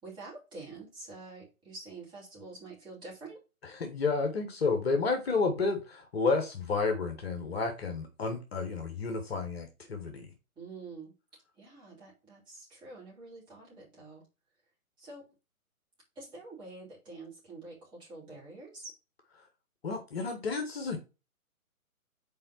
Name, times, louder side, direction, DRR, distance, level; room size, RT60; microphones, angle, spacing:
voice 1, 0.0-3.4 10.6-11.1 11.6-14.3 15.0-15.3 16.1-18.9, right 3 dB, 10° right, 2.9 m, -47 dB
voice 2, 3.7-10.3 19.8-21.0, left 4 dB, 45° left, 1.2 m, -31 dB
5.5 x 4.4 x 4.5 m
figure-of-eight pair, 135°, 44 cm